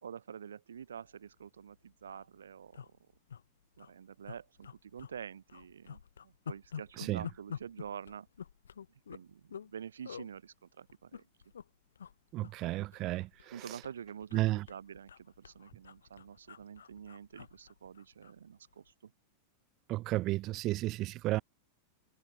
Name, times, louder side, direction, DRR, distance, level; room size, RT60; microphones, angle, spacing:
voice 1, 0.0-2.8 3.8-8.3 9.1-11.2 13.5-19.1, right 8 dB, 70° right, 4.4 m, -47 dB
sound 1, 1.3-1.4 1.7-1.8 2.0-2.2 2.7-3.4 3.7-3.9 4.2-5.2 5.5-9.7 10.0-10.3 10.9-11.6 11.9-12.1 12.4-13.5 13.8-18.4 18.7-18.9, left 7 dB, 70° left, 4.3 m, -47 dB
voice 2, 12.3-13.3 14.3-14.6 19.9-21.4, right 17 dB, 35° right, 2.6 m, -32 dB
figure-of-eight pair, 90°, 0 cm